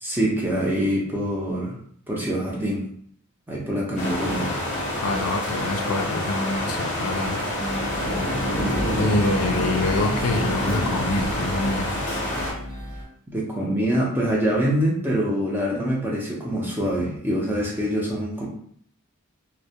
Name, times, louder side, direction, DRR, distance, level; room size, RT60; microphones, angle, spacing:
voice 1, 0.0-1.8 2.1-2.9 3.5-4.6 13.3-18.5, equal, 10° right, -4 dB, 0.5 m, -25 dB
sound 1, 4.0-12.5, left 1 dB, 35° left, 0.7 m, -27 dB
voice 2, 5.0-7.4 9.0-11.9, left 2 dB, 90° left, 4 dB, 0.4 m, -26 dB
sound 2, 7.6-13.0, equal, 55° right, 1.0 m, -33 dB
2.2 x 2.1 x 2.7 m, 0.63 s
head